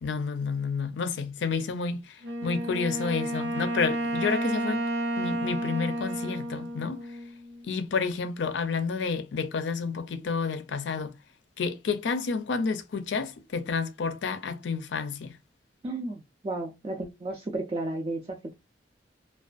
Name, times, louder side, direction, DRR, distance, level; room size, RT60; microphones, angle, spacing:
voice 1, 0.0-4.8 5.2-7.0 7.6-11.1 11.6-15.4, left 5 dB, 90° left, 0.4 m, -30 dB
Wind instrument woodwind instrument, 2.2-7.7, right 1 dB, 80° right, 0.5 m, -31 dB
voice 2, 15.8-18.5, right 2 dB, 30° right, 0.4 m, -33 dB
2.4 x 2.2 x 2.4 m
head